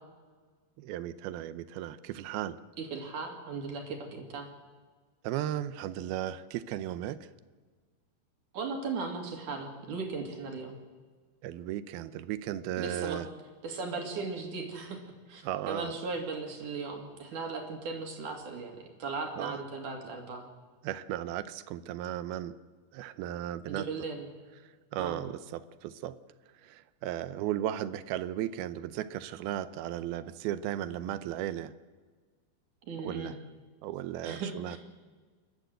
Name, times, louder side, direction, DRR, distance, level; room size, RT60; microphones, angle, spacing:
voice 1, 0.8-2.6 5.2-7.3 11.4-13.3 15.4-15.9 19.4-19.6 20.8-22.5 22.9-23.9 24.9-26.2 26.6-31.7 33.0-33.4 33.8-34.8, right 12 dB, 80° right, 14 dB, 2.5 m, -35 dB
voice 2, 2.8-4.5 8.5-10.8 12.8-13.2 13.6-15.0 15.3-20.5 23.7-24.3 25.0-25.2 32.9-33.3 34.2-34.8, right 4 dB, 55° right, 3 dB, 3.6 m, -37 dB
28.5 x 12.0 x 7.9 m, 1.5 s
omnidirectional pair, 4.6 m